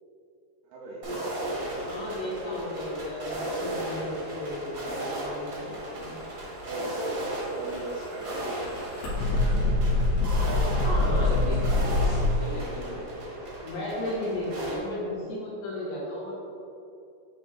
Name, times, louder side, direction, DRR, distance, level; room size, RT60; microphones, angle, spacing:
voice 1, 0.6-1.1 6.6-6.9 7.4-9.7 11.2-11.6, right 2 dB, 90° right, -4 dB, 1.9 m, -40 dB
sound 1, 1.0-14.8, right 1 dB, 60° right, 1.2 m, -35 dB
voice 2, 1.8-6.1 10.8-11.6 12.3-16.4, left 1 dB, 65° left, -7 dB, 2.3 m, -34 dB
sound 2, 7.2-12.4, left 2 dB, 85° left, 3.5 m, -25 dB
9.8 x 3.5 x 3.1 m, 2.7 s
omnidirectional pair, 4.5 m